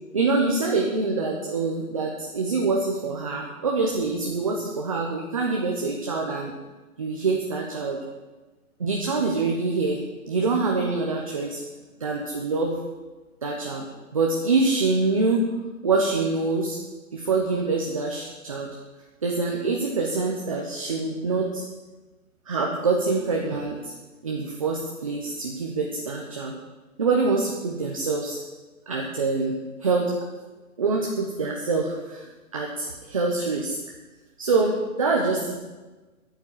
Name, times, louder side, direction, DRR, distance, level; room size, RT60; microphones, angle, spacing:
voice 1, 0.1-6.5 7.0-8.0 8.8-10.0 10.3-11.6 12.0-12.8 13.4-13.9 14.1-15.5 15.8-16.8 17.1-18.7 19.2-21.6 22.5-23.8 24.2-26.5 27.0-28.4 28.9-30.2 30.8-32.3 32.5-33.8 34.4-35.5, right 3 dB, 25° right, -1 dB, 1.0 m, -25 dB
11.5 x 9.1 x 7.3 m, 1.2 s
hypercardioid pair, 175°, 43 cm